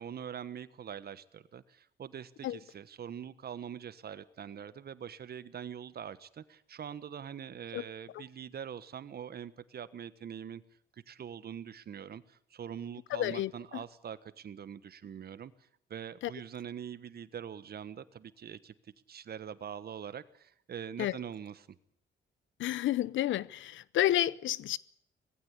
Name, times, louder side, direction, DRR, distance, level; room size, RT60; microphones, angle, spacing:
voice 1, 0.0-10.6 11.1-15.5 15.9-21.8, right 8 dB, 50° right, 1.3 m, -43 dB
voice 2, 13.1-13.8 16.2-16.3 21.0-21.2 22.6-24.8, left 13 dB, 75° left, 0.8 m, -31 dB
19.0 x 16.0 x 9.9 m
cardioid pair, 90°, 20 cm